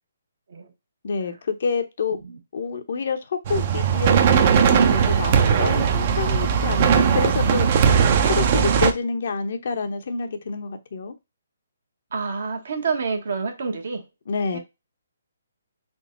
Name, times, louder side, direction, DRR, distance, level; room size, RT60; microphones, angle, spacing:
voice 1, 1.0-2.2 2.5-11.1 14.3-14.6, left 5 dB, 60° left, 0.8 m, -28 dB
sound 1, 3.4-8.9, right 7 dB, 40° right, 0.6 m, -18 dB
voice 2, 12.1-14.1 14.5-14.6, right 5 dB, 65° right, 1.2 m, -28 dB
3.8 x 2.8 x 3.8 m
hypercardioid pair, 145°, 0 cm